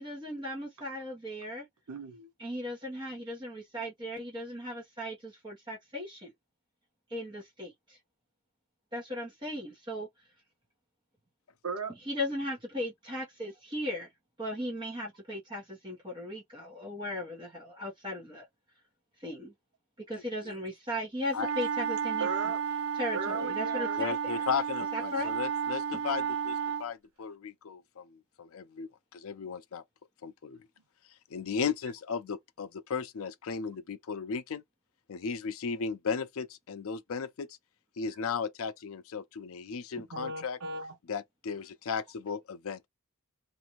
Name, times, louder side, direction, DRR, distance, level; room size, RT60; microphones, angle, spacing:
voice 1, 0.0-1.7 2.4-6.3 7.1-8.0 8.9-10.1 12.1-14.1 14.4-18.5 19.2-19.5 20.1-22.3 22.9-24.4 24.9-25.3 40.0-40.1, left 1 dB, 20° right, 1.0 m, -37 dB
voice 2, 1.9-2.3 11.6-11.9 22.2-22.6 23.1-24.0 40.1-41.0, right 4 dB, 85° right, 0.9 m, -36 dB
sound 1, 21.3-26.9, right 7 dB, 70° right, 0.6 m, -32 dB
voice 3, 24.0-29.8 30.2-30.6 31.3-34.6 35.1-37.5 38.0-40.6 41.1-42.9, left 6 dB, 65° left, 0.4 m, -35 dB
2.6 x 2.5 x 3.0 m
head